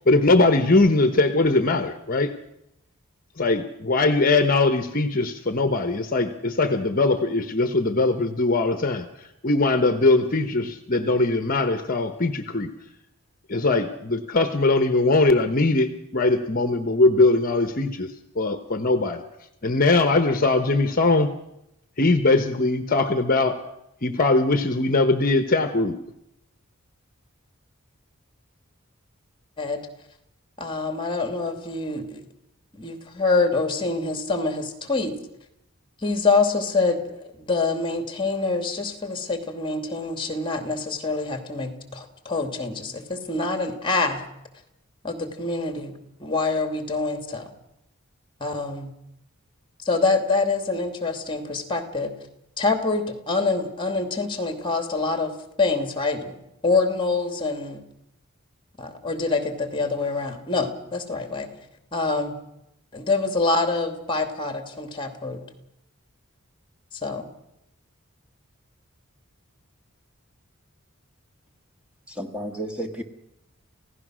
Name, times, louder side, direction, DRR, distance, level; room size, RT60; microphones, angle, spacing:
voice 1, 0.1-2.3 3.4-9.1 9.4-12.7 13.5-18.1 18.4-19.2 19.6-21.3 22.0-23.6 24.0-26.0, left 2 dB, 40° left, 9 dB, 1.0 m, -21 dB
voice 2, 30.6-32.2 32.7-35.1 36.0-37.0 37.4-44.2 45.0-45.9 46.2-47.5 48.4-48.9 49.8-52.1 52.6-55.3 55.6-56.4 56.6-57.8 58.8-61.5 61.9-62.4 62.9-65.4 67.0-67.3, left 3 dB, 25° left, 7 dB, 2.5 m, -25 dB
voice 3, 72.1-73.0, right 1 dB, 5° right, 4 dB, 1.7 m, -32 dB
29.0 x 16.0 x 6.3 m, 0.85 s
head